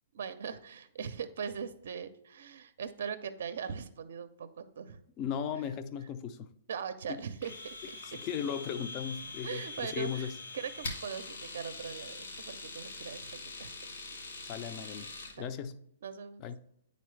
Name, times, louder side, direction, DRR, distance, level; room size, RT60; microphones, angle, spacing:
voice 1, 0.1-5.0 6.7-7.8 9.4-13.9 15.3-15.5 16.0-16.4, right 7 dB, 70° right, 0.5 m, -40 dB
voice 2, 5.2-6.5 7.1-7.2 8.2-10.4 14.4-15.8 16.4-16.6, left 8 dB, 30° left, 0.4 m, -37 dB
Domestic sounds home sounds, 7.4-15.4, left 3 dB, 70° left, 1.8 m, -43 dB
9.2 x 4.0 x 3.2 m
hypercardioid pair, 140°, 0 cm